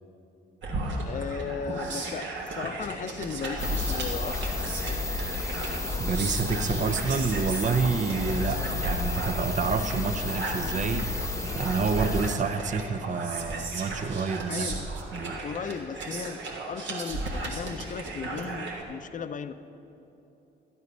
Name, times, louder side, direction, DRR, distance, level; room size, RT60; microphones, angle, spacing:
sound 1, 0.6-18.8, right 2 dB, 70° right, 1.7 m, -35 dB
voice 1, 1.0-4.6 14.5-14.9 15.4-19.5, left 6 dB, 40° left, 11 dB, 0.6 m, -36 dB
sound 2, 3.6-12.4, left 3 dB, 15° left, 0.9 m, -32 dB
voice 2, 6.0-11.1 11.5-14.7 15.1-15.4, right 5 dB, 40° right, 9 dB, 0.6 m, -28 dB
13.0 x 9.6 x 5.4 m, 2.9 s
cardioid pair, 90°, 20 cm